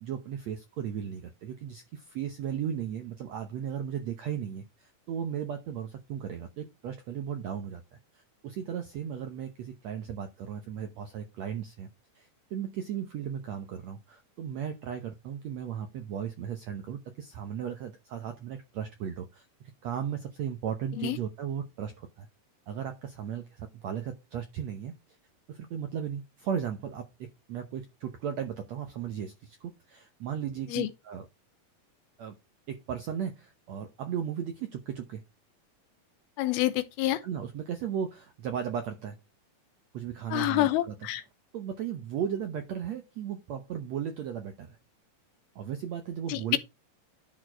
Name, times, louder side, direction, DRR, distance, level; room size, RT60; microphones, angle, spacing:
voice 1, 0.0-7.8 8.1-11.9 12.1-22.3 22.7-25.0 25.5-31.3 32.2-32.3 32.7-35.2 37.2-39.2 39.9-41.1 41.5-44.8 45.5-46.6, right 8 dB, 75° right, 1.6 m, -36 dB
voice 2, 36.4-37.2 40.3-41.2 46.3-46.4, left 15 dB, 85° left, 2.7 m, -27 dB
11.0 x 4.3 x 4.6 m
omnidirectional pair, 4.4 m